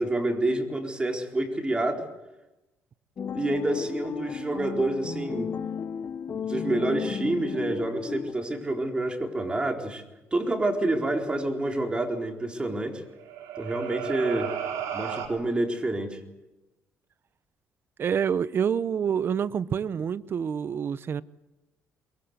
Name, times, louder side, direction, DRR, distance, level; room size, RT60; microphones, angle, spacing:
voice 1, 0.0-2.0 3.2-5.5 6.3-10.0 10.3-13.0 13.6-14.5 14.9-16.2, right 2 dB, 20° right, 4.2 m, -28 dB
sound 1, 3.2-8.3, left 7 dB, 45° left, 1.1 m, -34 dB
sound 2, 13.1-15.3, right 9 dB, 90° right, 4.3 m, -33 dB
voice 2, 18.0-21.2, right 7 dB, 45° right, 0.9 m, -27 dB
24.0 x 22.5 x 8.2 m
cardioid pair, 105°, 5 cm